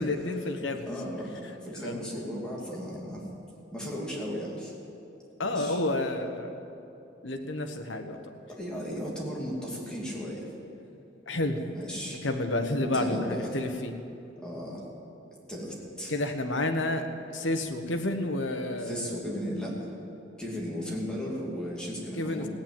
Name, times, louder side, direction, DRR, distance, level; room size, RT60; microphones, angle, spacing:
voice 1, 0.0-0.9 1.8-2.0 5.4-6.5 7.2-8.2 11.3-11.6 12.2-13.9 16.1-19.2 22.2-22.5, left 2 dB, 80° left, 6 dB, 1.3 m, -30 dB
voice 2, 0.9-3.2 3.7-4.7 5.4-5.8 8.5-10.5 11.7-12.2 12.9-13.5 14.4-14.8 15.5-16.1 18.8-19.8 20.4-22.5, equal, 5° left, -5 dB, 2.8 m, -35 dB
17.0 x 9.0 x 9.0 m, 2.8 s
head